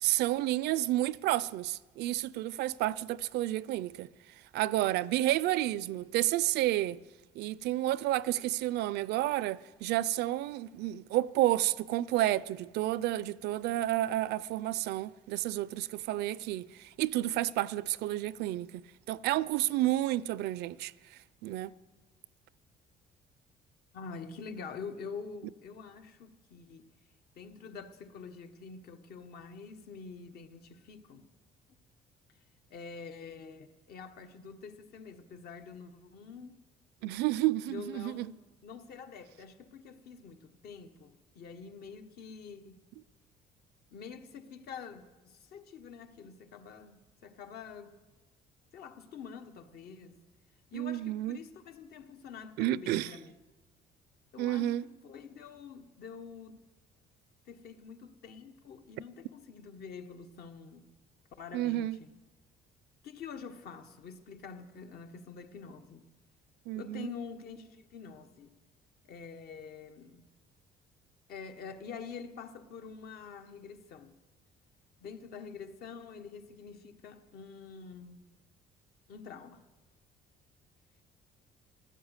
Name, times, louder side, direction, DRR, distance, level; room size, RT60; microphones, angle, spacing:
voice 1, 0.0-4.1 4.5-7.0 7.3-20.9 21.4-21.7 37.0-38.3 50.7-51.4 52.6-53.2 54.4-54.8 61.5-62.0 66.7-67.1, right 15 dB, 80° right, 0.5 m, -30 dB
voice 2, 23.9-26.9 27.3-31.3 32.7-36.6 37.7-42.8 43.9-48.0 48.7-50.2 50.7-53.4 54.3-56.6 57.5-60.9 61.4-62.1 63.0-66.1 66.7-68.5 69.0-70.2 71.3-74.1 75.0-78.3 79.1-79.6, left 5 dB, 65° left, 1.3 m, -46 dB
14.5 x 12.0 x 8.1 m
cardioid pair, 110°, 17 cm